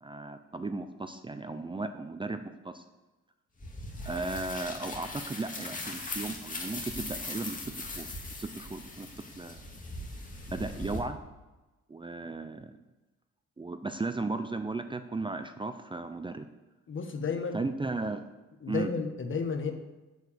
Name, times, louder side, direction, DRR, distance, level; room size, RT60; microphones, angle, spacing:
voice 1, 0.0-2.8 4.0-8.1 8.4-9.1 9.4-9.6 10.5-11.2 11.9-12.7 13.6-16.5 17.5-18.2 18.7-18.9, right 3 dB, 15° right, 9 dB, 0.6 m, -35 dB
sound 1, 3.6-11.0, left 2 dB, 25° left, 2.2 m, -40 dB
voice 2, 16.9-17.6 18.6-19.7, left 5 dB, 40° left, 6 dB, 1.4 m, -32 dB
8.0 x 7.2 x 7.0 m, 1.1 s
cardioid pair, 90°, 30 cm